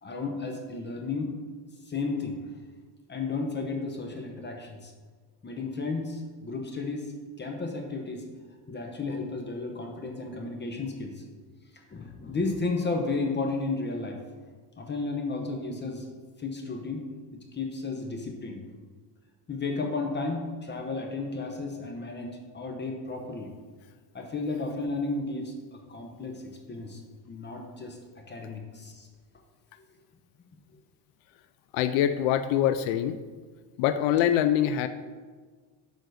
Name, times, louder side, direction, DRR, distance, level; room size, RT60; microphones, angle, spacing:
voice 1, 0.0-1.4 1.9-2.4 3.1-4.9 5.4-7.1 7.4-8.2 8.7-11.1 11.9-14.2 14.8-16.1 16.4-17.1 17.5-18.6 19.5-23.5 24.1-27.0 27.3-28.0 28.3-29.1, left 3 dB, 25° left, 2 dB, 0.9 m, -33 dB
voice 2, 31.7-33.2 33.8-34.9, left 10 dB, 90° left, 10 dB, 0.5 m, -24 dB
7.0 x 3.9 x 6.3 m, 1.5 s
cardioid pair, 130°, 47 cm